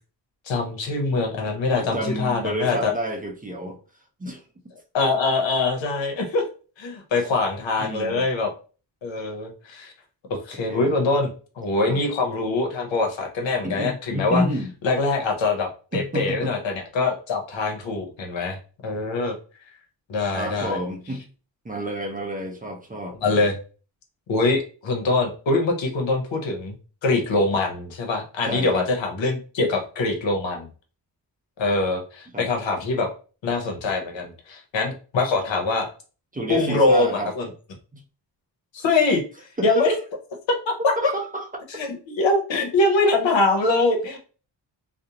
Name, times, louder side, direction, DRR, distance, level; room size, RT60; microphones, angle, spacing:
voice 1, 0.5-2.9 4.9-6.4 6.8-8.5 9.0-9.9 10.3-11.3 11.6-14.4 14.8-18.6 18.8-19.4 20.1-20.8 23.2-23.5 24.3-26.8 27.0-30.7 31.6-33.1 33.4-35.9 36.5-37.5 38.7-39.2 39.6-39.9 40.7-40.9 41.7-44.2, left 3 dB, 80° left, 3 dB, 0.8 m, -23 dB
voice 2, 1.7-3.8 4.2-4.4 7.2-7.3 7.8-8.3 10.7-10.9 11.9-12.0 13.6-14.7 15.9-16.6 20.3-21.2 21.6-23.5 28.4-28.9 32.3-32.5 36.3-37.3 37.9-38.0 39.6-40.0 41.0-41.5, equal, 20° right, 2 dB, 0.5 m, -29 dB
2.5 x 2.1 x 2.8 m, 0.37 s
cardioid pair, 80°, 44 cm